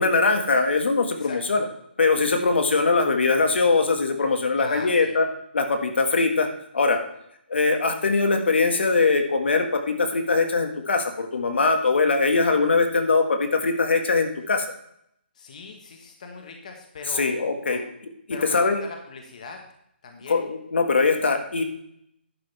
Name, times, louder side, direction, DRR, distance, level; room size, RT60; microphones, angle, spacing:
voice 1, 0.0-1.6 2.0-5.3 5.5-7.0 7.5-14.7 17.2-17.8 18.3-18.8 20.3-21.6, left 4 dB, 80° left, 5 dB, 1.8 m, -22 dB
voice 2, 1.1-1.7 4.5-5.1 15.3-17.3 17.7-17.8 18.3-19.6 20.0-20.4, left 4 dB, 40° left, 4 dB, 1.3 m, -40 dB
11.0 x 8.5 x 3.4 m, 0.73 s
hypercardioid pair, 175°, 6 cm